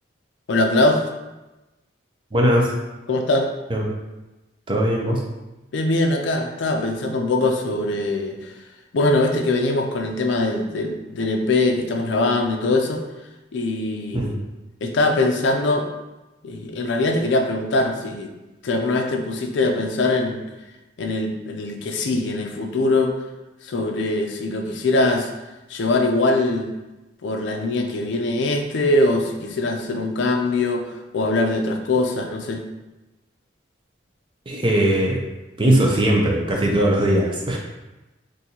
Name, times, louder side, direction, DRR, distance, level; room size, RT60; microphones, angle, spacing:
voice 1, 0.5-1.0 3.1-3.5 5.7-8.4 8.9-13.0 13.5-14.2 14.8-15.9 16.4-18.3 18.6-20.4 21.0-23.1 23.6-25.3 25.7-26.7 27.2-32.7, left 2 dB, 70° left, 4 dB, 0.4 m, -22 dB
voice 2, 2.3-2.7 3.7-3.9 4.7-5.2 14.1-14.3 34.5-35.2 35.6-37.6, right 1 dB, 25° right, -1 dB, 0.5 m, -19 dB
3.8 x 2.6 x 2.8 m, 1.0 s
head